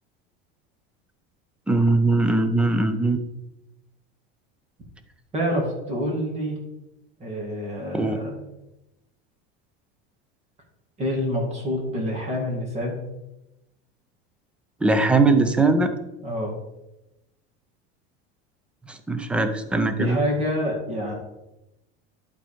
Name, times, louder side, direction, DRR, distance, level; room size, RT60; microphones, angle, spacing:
voice 1, 1.7-3.2 7.9-8.2 14.8-15.9 19.1-20.2, right 3 dB, 5° right, 8 dB, 0.4 m, -20 dB
voice 2, 5.3-6.6 7.2-8.4 11.0-13.0 16.2-16.5 20.0-21.1, equal, 25° right, -1 dB, 2.1 m, -27 dB
11.5 x 4.1 x 4.9 m, 0.93 s
cardioid pair, 165°, 29 cm